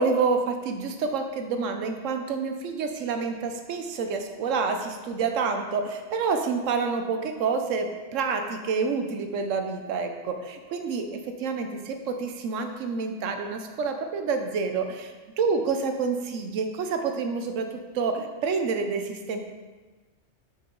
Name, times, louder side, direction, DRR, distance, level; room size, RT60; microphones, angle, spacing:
voice 1, 0.0-19.4, right 4 dB, 85° right, 6 dB, 1.1 m, -28 dB
6.9 x 6.3 x 3.8 m, 1.3 s
omnidirectional pair, 1.3 m